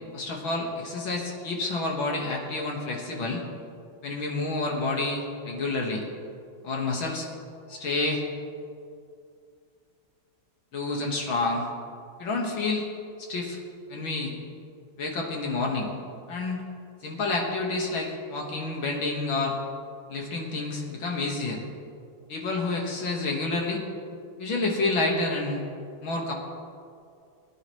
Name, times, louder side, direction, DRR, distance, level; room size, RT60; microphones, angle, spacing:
voice 1, 0.1-3.4 4.0-6.0 6.6-7.3 7.7-8.2 10.7-11.7 12.2-12.9 13.2-13.6 13.9-14.3 15.0-15.9 16.3-16.6 17.0-19.6 20.1-21.6 22.3-23.8 24.4-25.6 26.0-26.3, left 3 dB, 70° left, -1 dB, 2.3 m, -29 dB
21.5 x 10.5 x 3.1 m, 2.4 s
omnidirectional pair, 2.3 m